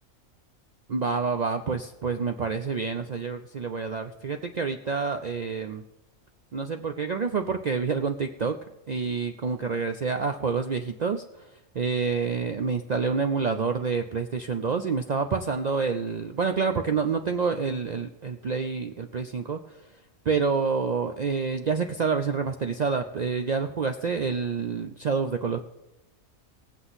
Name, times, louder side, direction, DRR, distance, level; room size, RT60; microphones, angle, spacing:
voice 1, 0.9-5.8 6.5-8.6 8.9-11.2 11.7-19.8 20.3-25.6, right 5 dB, 65° right, 7 dB, 0.4 m, -28 dB
18.0 x 7.9 x 4.0 m, 0.98 s
omnidirectional pair, 1.4 m